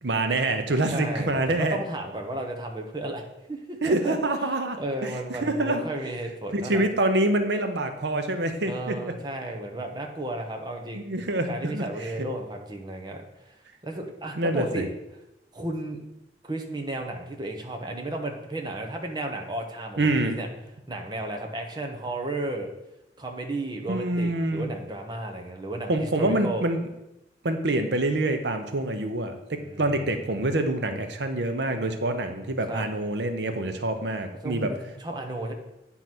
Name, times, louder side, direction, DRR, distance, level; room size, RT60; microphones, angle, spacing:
voice 1, 0.0-1.8 3.8-5.8 6.5-9.1 10.9-12.1 14.4-14.8 20.0-20.4 23.9-24.7 25.9-26.8 27.4-34.7, right 2 dB, 80° right, 7 dB, 0.8 m, -26 dB
voice 2, 0.9-3.2 3.5-4.2 4.8-6.8 8.7-11.1 11.5-13.5 13.8-14.9 15.5-16.0 16.4-20.5 20.9-22.7 23.2-25.9 26.2-26.6 29.6-29.8 32.7-32.8 34.4-35.5, right 1 dB, 25° right, 2 dB, 0.9 m, -33 dB
9.2 x 3.9 x 6.0 m, 0.90 s
head